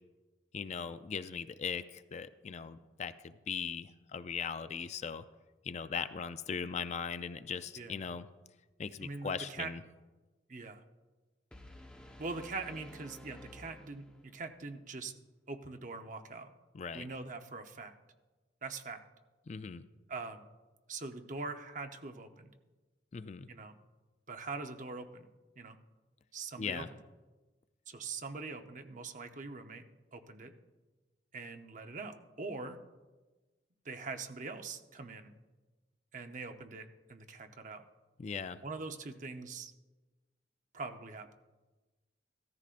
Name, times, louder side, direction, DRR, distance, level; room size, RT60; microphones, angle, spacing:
voice 1, 0.5-5.2 5.6-8.3 8.8-9.8 16.7-17.1 19.5-19.8 23.1-23.5 26.6-26.9 38.2-38.6, left 6 dB, 40° left, 12 dB, 0.4 m, -39 dB
voice 2, 9.0-9.7 10.5-10.8 12.2-15.1 15.5-16.5 16.9-17.9 18.6-19.0 20.1-20.5 20.9-22.5 23.5-23.7 24.3-25.3 25.6-25.8 26.3-26.8 27.9-29.8 30.1-30.5 31.3-32.8 33.8-35.3 36.1-37.8 38.6-39.7 40.7-41.3, right 3 dB, 45° right, 6 dB, 0.8 m, -43 dB
sound 1, 11.5-14.5, left 1 dB, 5° left, 1.0 m, -53 dB
16.0 x 13.5 x 2.5 m, 1.2 s
head